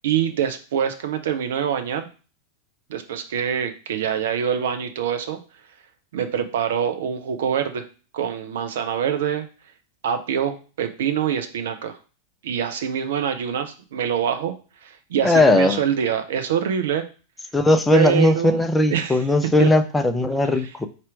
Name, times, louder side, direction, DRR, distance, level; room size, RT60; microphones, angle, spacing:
voice 1, 0.0-2.1 2.9-5.4 6.1-7.9 8.1-9.5 10.0-12.0 12.4-14.5 14.8-17.1 17.9-18.6 18.9-19.2 19.6-19.7, right 8 dB, 60° right, 7 dB, 0.5 m, -25 dB
voice 2, 15.2-15.8 17.5-20.9, left 1 dB, 10° left, 7 dB, 0.5 m, -18 dB
4.2 x 2.5 x 4.6 m, 0.36 s
figure-of-eight pair, 90°, 0 cm